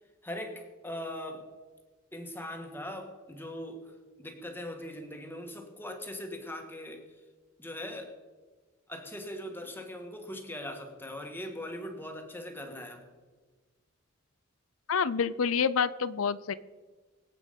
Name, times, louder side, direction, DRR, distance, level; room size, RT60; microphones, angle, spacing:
voice 1, 0.2-1.5 2.1-7.0 7.6-8.2 8.9-13.1, left 1 dB, 10° left, 4 dB, 1.9 m, -40 dB
voice 2, 14.9-16.5, left 6 dB, 80° left, 15 dB, 0.5 m, -27 dB
24.0 x 8.5 x 5.3 m, 1.3 s
head